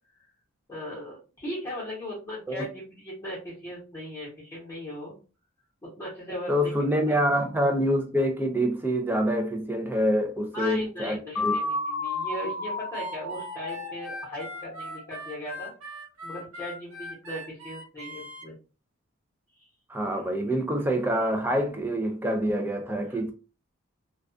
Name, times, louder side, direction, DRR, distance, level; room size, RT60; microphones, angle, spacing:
voice 1, 0.7-5.1 5.8-6.7 7.1-7.2 10.5-15.7 16.2-18.5 19.6-19.7 23.1-23.2, left 1 dB, 15° left, 0.9 m, -38 dB
voice 2, 6.5-11.6 19.9-23.3, equal, 10° right, 0.4 m, -26 dB
sound 1, 11.4-15.2, left 2 dB, 85° left, 0.5 m, -32 dB
Harmonica, 12.9-18.5, equal, 80° right, 1.0 m, -41 dB
2.3 x 2.3 x 2.4 m
head